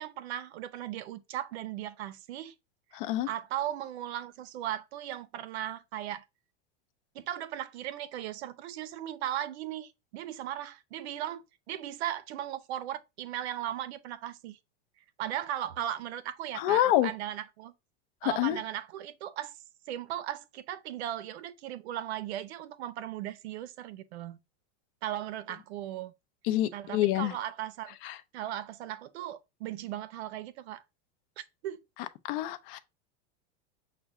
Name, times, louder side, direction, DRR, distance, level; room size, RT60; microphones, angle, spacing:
voice 1, 0.0-2.5 2.9-3.0 3.3-6.2 7.1-14.6 15.2-17.7 18.2-19.6 19.9-24.4 25.0-26.1 26.7-28.0 28.3-30.8 31.4-31.8, right 12 dB, 80° right, 0.7 m, -37 dB
voice 2, 2.9-3.3 16.5-17.1 18.2-18.6 26.4-27.3 28.0-28.2 32.2-32.8, left 14 dB, 55° left, 0.6 m, -27 dB
5.8 x 2.2 x 3.6 m
supercardioid pair, 150°, 32 cm